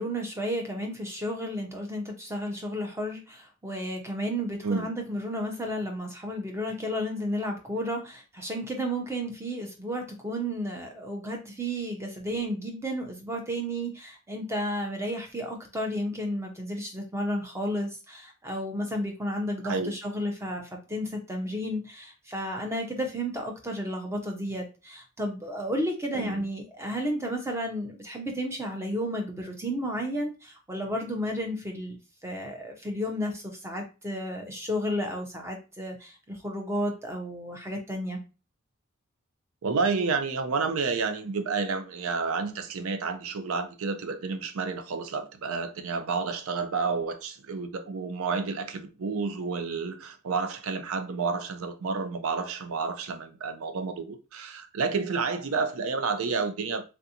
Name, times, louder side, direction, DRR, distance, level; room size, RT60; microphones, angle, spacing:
voice 1, 0.0-38.2, equal, 10° right, 0.6 m, -32 dB
voice 2, 39.6-56.8, right 4 dB, 75° right, 0.5 m, -30 dB
3.4 x 2.5 x 2.8 m
head